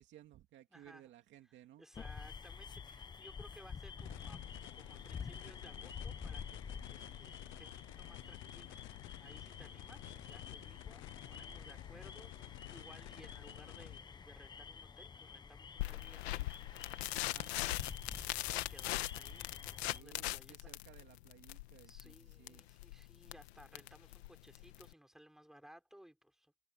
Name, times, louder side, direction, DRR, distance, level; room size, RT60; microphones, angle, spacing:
voice 1, 0.0-1.8 17.2-17.5 19.8-22.6, right 13 dB, 35° right, 2.4 m, -60 dB
voice 2, 0.7-1.1 1.8-4.4 4.8-17.0 18.0-20.7 21.9-26.5, equal, ahead, 5.0 m, -60 dB
sound 1, 1.9-20.0, left 6 dB, 15° left, 1.0 m, -49 dB
sound 2, 4.0-14.0, left 21 dB, 40° left, 0.6 m, -52 dB
sound 3, 15.8-24.9, left 17 dB, 90° left, 1.5 m, -41 dB
supercardioid pair, 150°, 31 cm